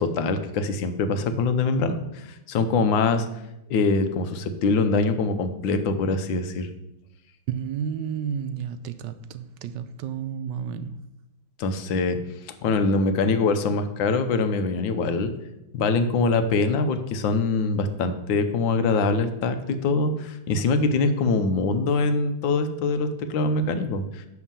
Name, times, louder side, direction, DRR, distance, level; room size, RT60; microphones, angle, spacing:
voice 1, 0.0-3.3 3.7-6.7 11.6-12.2 12.6-15.3 15.7-19.6 19.8-24.2, left 3 dB, 85° left, 9 dB, 1.6 m, -23 dB
voice 2, 7.5-11.0, right 8 dB, 75° right, 11 dB, 1.2 m, -31 dB
10.5 x 3.6 x 7.3 m, 0.91 s
omnidirectional pair, 2.0 m